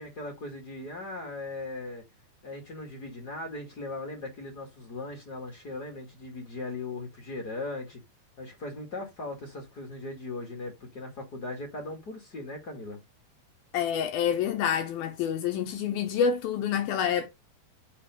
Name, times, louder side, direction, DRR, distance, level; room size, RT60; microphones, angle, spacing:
voice 1, 0.0-2.0 2.4-8.0 8.4-13.0, left 2 dB, 45° left, 1.3 m, -38 dB
voice 2, 13.7-17.3, left 8 dB, 80° left, 2.3 m, -27 dB
7.0 x 4.3 x 5.2 m
omnidirectional pair, 4.9 m